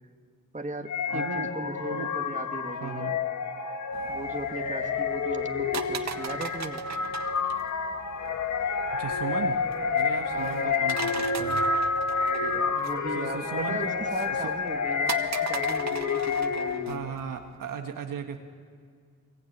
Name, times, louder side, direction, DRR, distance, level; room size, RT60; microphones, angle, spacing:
voice 1, 0.5-3.2 4.1-6.9 10.3-10.9 12.3-17.2, right 2 dB, 20° right, 5 dB, 2.4 m, -38 dB
sound 1, 0.9-17.1, left 5 dB, 60° left, 1.8 m, -29 dB
voice 2, 1.1-1.5 1.9-2.1 2.7-3.2 9.0-9.6 9.9-11.6 13.1-13.9 14.3-14.5 16.8-18.4, right 7 dB, 75° right, 4 dB, 1.7 m, -36 dB
sound 2, 3.9-17.6, right 6 dB, 55° right, 1.6 m, -40 dB
23.5 x 22.0 x 9.4 m, 2.1 s
supercardioid pair, 50°, 33 cm